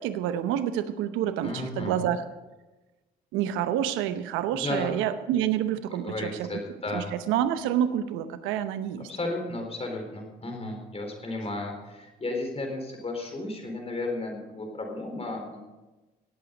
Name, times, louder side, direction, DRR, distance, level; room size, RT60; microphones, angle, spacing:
voice 1, 0.0-2.2 3.3-6.5 6.9-9.1, right 10 dB, 85° right, 12 dB, 0.8 m, -28 dB
voice 2, 1.4-1.9 4.5-4.9 6.1-7.1 9.1-15.7, left 2 dB, 30° left, 2 dB, 4.2 m, -34 dB
17.5 x 8.5 x 5.3 m, 1.1 s
supercardioid pair, 60°, 20 cm